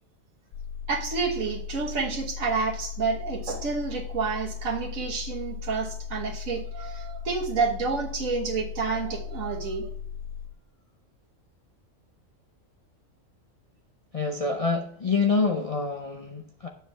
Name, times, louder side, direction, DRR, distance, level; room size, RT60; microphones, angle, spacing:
sound 1, 0.5-10.5, left 7 dB, 75° left, 1.0 m, -37 dB
voice 1, 0.9-9.9, right 4 dB, 75° right, -1 dB, 1.6 m, -29 dB
voice 2, 14.1-16.7, left 4 dB, 40° left, 1 dB, 0.5 m, -26 dB
7.5 x 6.9 x 3.3 m, 0.64 s
omnidirectional pair, 1.4 m